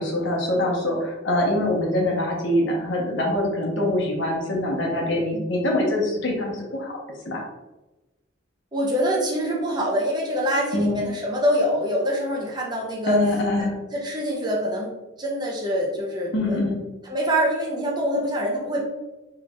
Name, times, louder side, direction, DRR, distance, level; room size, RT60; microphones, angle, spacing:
voice 1, 0.0-7.0 7.2-7.4 10.7-11.1 13.0-13.8 16.3-16.8, left 1 dB, 70° left, -1 dB, 1.0 m, -24 dB
voice 2, 5.0-5.4 8.7-13.2 13.9-14.9 15.2-16.6 17.1-18.8, equal, 20° right, -2 dB, 0.6 m, -25 dB
4.0 x 3.2 x 2.4 m, 1.1 s
head